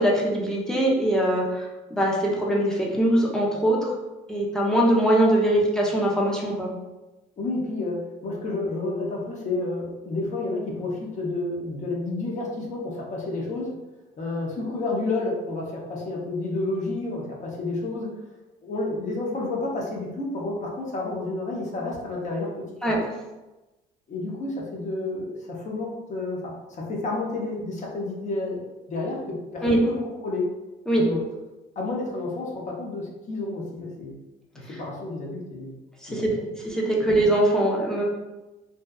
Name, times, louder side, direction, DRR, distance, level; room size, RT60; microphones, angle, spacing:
voice 1, 0.0-3.9 4.3-6.7 22.8-23.0 29.6-29.8 30.9-31.0 36.0-36.2 36.6-38.0, right 1 dB, 5° left, -3 dB, 0.6 m, -22 dB
voice 2, 7.4-13.8 14.2-18.1 18.6-22.7 24.1-28.6 28.9-30.5 30.9-31.2 31.8-34.2 34.5-35.8 36.1-36.3, left 2 dB, 45° left, -2 dB, 0.6 m, -30 dB
2.7 x 2.2 x 2.2 m, 1.1 s
cardioid pair, 110°, 17 cm